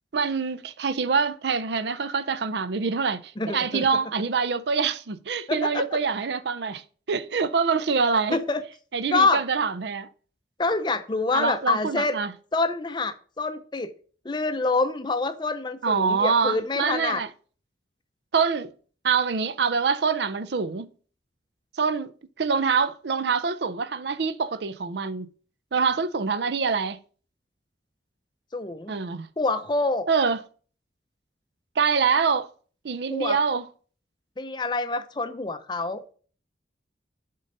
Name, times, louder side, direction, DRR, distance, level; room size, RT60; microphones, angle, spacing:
voice 1, 0.1-8.4 8.9-10.1 11.3-12.3 15.8-17.3 18.3-18.7 19.0-20.9 21.8-22.1 22.4-25.3 25.7-27.0 28.9-29.3 30.1-30.4 31.8-32.5 32.8-33.7, right 5 dB, 70° right, 0.5 m, -25 dB
voice 2, 3.4-3.9 5.5-5.8 8.3-8.6 9.1-9.4 10.6-12.2 12.5-13.9 14.2-17.2 28.5-28.9 29.4-30.1 33.1-33.4 34.4-36.0, left 3 dB, 25° left, 0.5 m, -26 dB
7.5 x 3.9 x 5.3 m
head